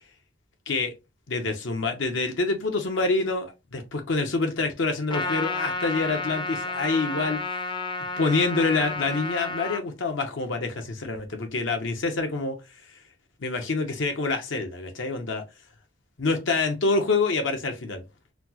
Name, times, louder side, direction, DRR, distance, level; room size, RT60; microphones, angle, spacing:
voice 1, 1.3-7.6 8.1-12.6 13.4-15.4 16.2-18.0, left 3 dB, 75° left, 0.7 m, -26 dB
Trumpet, 5.1-9.8, left 2 dB, 25° left, 0.5 m, -31 dB
4.1 x 2.0 x 2.7 m
head